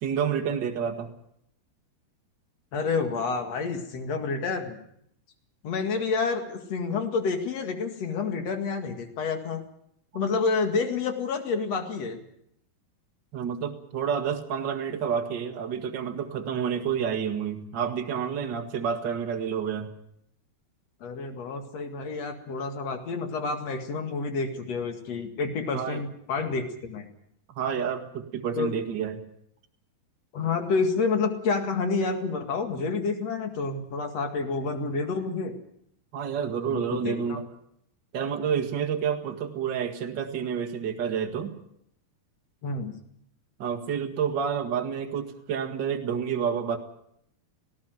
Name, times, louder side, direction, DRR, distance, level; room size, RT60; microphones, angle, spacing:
voice 1, 0.0-1.1 13.3-19.9 25.7-26.0 27.5-29.2 36.1-37.4 38.1-41.5 43.6-46.8, right 7 dB, 45° right, 5 dB, 1.4 m, -29 dB
voice 2, 2.7-4.8 5.6-9.6 10.1-12.2 21.0-27.1 28.6-28.7 30.3-35.5 36.6-37.4 42.6-42.9, left 4 dB, 50° left, 6 dB, 2.6 m, -29 dB
18.5 x 16.5 x 9.1 m, 0.72 s
omnidirectional pair, 4.6 m